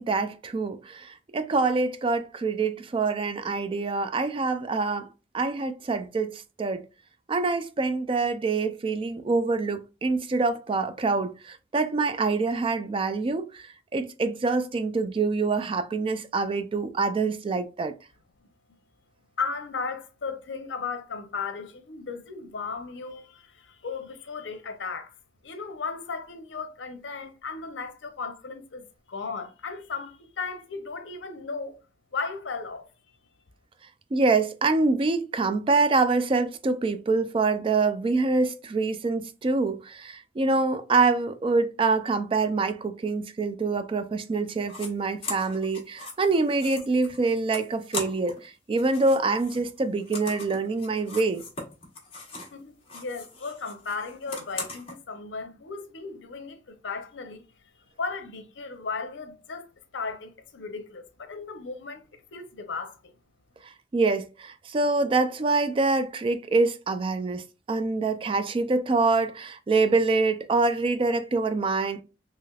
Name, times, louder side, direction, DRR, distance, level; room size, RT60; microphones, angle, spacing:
voice 1, 0.0-5.1 5.3-6.9 7.3-17.9 34.1-51.4 63.9-72.0, right 3 dB, 30° right, 0.3 m, -25 dB
voice 2, 19.4-25.1 25.4-31.8 32.1-32.9 52.5-57.4 58.0-59.7 59.9-63.1, left 4 dB, 80° left, 0.6 m, -36 dB
sound 1, 44.6-44.9 45.2-48.4 48.7-52.6 52.8-54.9, left 3 dB, 30° left, 1.0 m, -39 dB
3.2 x 3.0 x 2.3 m
head